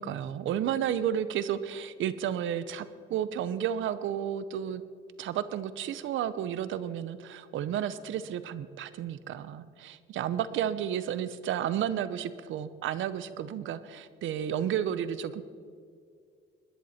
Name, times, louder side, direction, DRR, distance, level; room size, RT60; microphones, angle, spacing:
voice 1, 0.0-4.8 5.2-15.4, right 9 dB, 80° right, 14 dB, 0.8 m, -32 dB
21.0 x 10.5 x 4.4 m, 2.2 s
cardioid pair, 90°, 20 cm